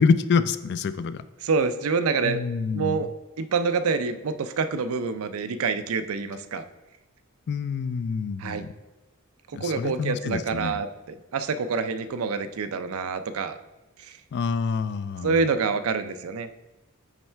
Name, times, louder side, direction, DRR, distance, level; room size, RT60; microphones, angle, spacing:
voice 1, 0.0-1.3 2.2-3.1 7.5-8.7 9.5-10.8 14.3-15.4, left 5 dB, 50° left, 14 dB, 0.3 m, -26 dB
voice 2, 1.4-2.4 2.7-3.1 3.4-6.6 8.4-8.7 9.5-13.6 14.0-14.2 15.2-16.5, right 4 dB, 70° right, 11 dB, 0.5 m, -27 dB
8.9 x 3.2 x 4.4 m, 1.1 s
head